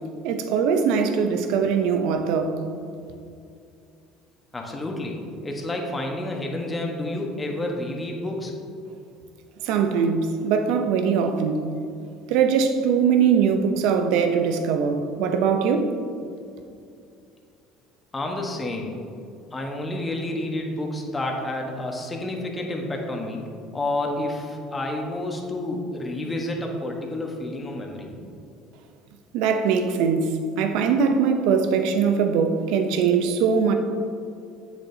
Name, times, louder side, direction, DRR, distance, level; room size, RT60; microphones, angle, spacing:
voice 1, 0.2-2.6 9.6-11.7 12.3-15.9 29.3-33.7, right 6 dB, 75° right, 6 dB, 0.7 m, -21 dB
voice 2, 4.5-8.5 18.1-18.9 19.5-23.4 23.7-28.1, left 1 dB, 20° left, 1 dB, 1.3 m, -29 dB
8.1 x 6.6 x 2.8 m, 2.4 s
supercardioid pair, 85°, 0 cm